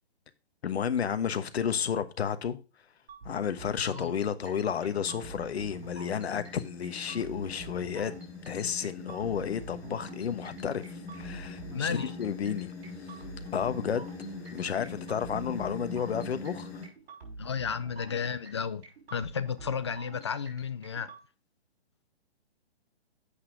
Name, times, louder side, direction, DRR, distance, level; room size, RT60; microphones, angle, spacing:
voice 1, 0.6-2.6 3.2-8.1 8.5-12.7 13.0-13.1 13.5-14.1 14.5-16.8, left 7 dB, 75° left, 1.2 m, -32 dB
sound 1, 3.1-21.2, right 3 dB, 70° right, 5.4 m, -47 dB
sound 2, 4.7-16.9, left 3 dB, 10° left, 2.0 m, -43 dB
voice 2, 11.7-12.1 17.4-18.8 19.1-21.1, left 6 dB, 25° left, 0.4 m, -33 dB
8.1 x 5.7 x 5.0 m
hypercardioid pair, 160°, 32 cm